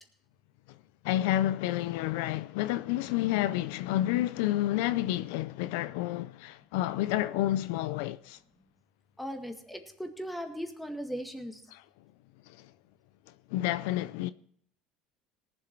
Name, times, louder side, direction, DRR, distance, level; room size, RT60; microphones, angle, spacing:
voice 1, 1.0-8.4 11.7-11.8 12.5-12.7 13.5-14.3, left 14 dB, 80° left, 0.4 m, -30 dB
voice 2, 9.2-11.6, equal, 5° left, 1.9 m, -38 dB
18.5 x 7.6 x 4.6 m
supercardioid pair, 95°, 0 cm